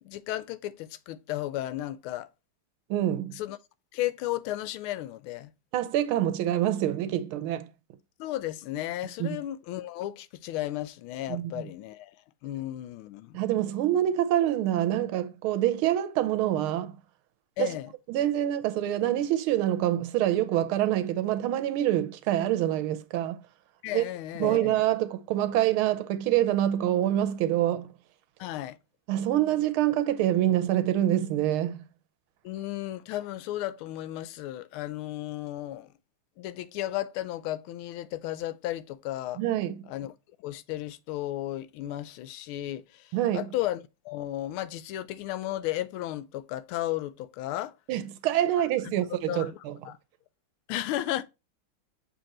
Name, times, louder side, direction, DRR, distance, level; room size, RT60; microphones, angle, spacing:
voice 1, 0.0-2.3 3.3-3.6 3.9-5.5 8.2-12.1 12.4-13.4 17.6-17.9 23.8-24.8 28.4-28.8 32.4-35.9 36.4-39.4 39.9-40.1 40.4-47.7 48.8-50.0 50.7-51.2, left 14 dB, 85° left, 1.4 m, -34 dB
voice 2, 2.9-3.4 5.7-7.7 9.2-9.4 11.3-11.7 13.3-17.0 17.6-17.7 18.1-23.4 23.9-24.0 24.4-27.9 29.1-31.8 39.4-39.9 43.1-43.5 47.9-49.8, right 12 dB, 85° right, 1.5 m, -26 dB
7.1 x 3.2 x 4.1 m
omnidirectional pair, 2.3 m